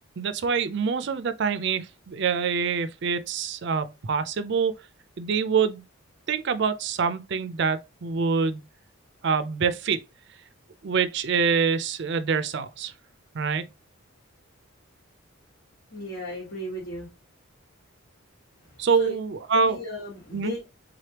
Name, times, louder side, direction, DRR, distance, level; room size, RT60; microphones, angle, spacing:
voice 1, 0.2-4.7 5.2-5.8 6.3-8.6 9.2-10.0 10.8-12.9 13.3-13.7 18.8-19.8 20.3-20.5, right 5 dB, 55° right, 0.4 m, -25 dB
voice 2, 15.9-17.1 18.6-19.1 19.5-20.7, left 1 dB, 60° left, 1.3 m, -36 dB
3.8 x 3.3 x 2.9 m
head